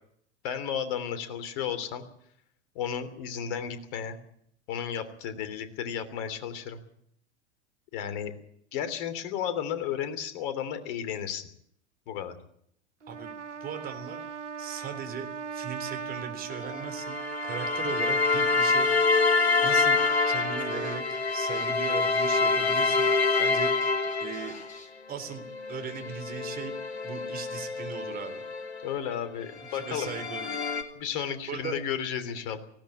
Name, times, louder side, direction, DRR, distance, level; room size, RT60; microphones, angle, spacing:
voice 1, 0.4-2.0 2.7-4.2 4.7-6.8 7.9-8.3 8.7-11.5 12.1-12.4 28.8-30.1 31.0-32.6, left 8 dB, 45° left, 11 dB, 3.2 m, -33 dB
Trumpet, 13.0-21.0, right 6 dB, 80° right, 1.1 m, -38 dB
voice 2, 13.6-14.2 14.6-18.9 19.3-20.0 20.3-23.1 23.4-23.7 24.2-24.5 25.1-25.4 25.7-26.7 27.0-28.4 29.7-30.5 31.5-31.8, right 7 dB, 25° right, 8 dB, 3.7 m, -38 dB
sound 1, 16.5-24.8 25.3-29.1 29.6-30.8, left 4 dB, 70° left, 2.9 m, -27 dB
Scratching (performance technique), 19.7-19.8 20.0-23.3 23.6-24.9, left 3 dB, 20° left, 7.4 m, -50 dB
19.0 x 17.0 x 8.7 m, 0.68 s
figure-of-eight pair, 90°, 35 cm